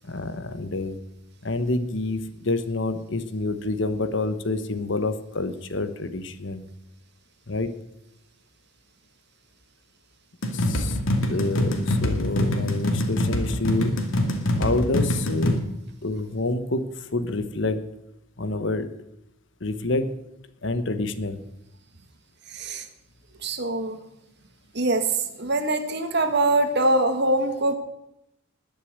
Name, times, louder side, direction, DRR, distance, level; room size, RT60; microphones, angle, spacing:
voice 1, 0.0-1.0 1.4-6.7 7.5-7.7 10.5-11.0 11.3-14.0 14.6-15.6 16.0-17.8 18.4-18.9 19.6-20.3 20.6-21.4, left 2 dB, 60° left, 10 dB, 1.2 m, -27 dB
sound 1, 10.4-15.6, left 1 dB, 80° left, 2.4 m, -24 dB
voice 2, 23.4-24.0 24.8-25.1 25.4-27.7, right 2 dB, 55° right, 8 dB, 1.7 m, -23 dB
20.5 x 6.9 x 8.1 m, 0.86 s
head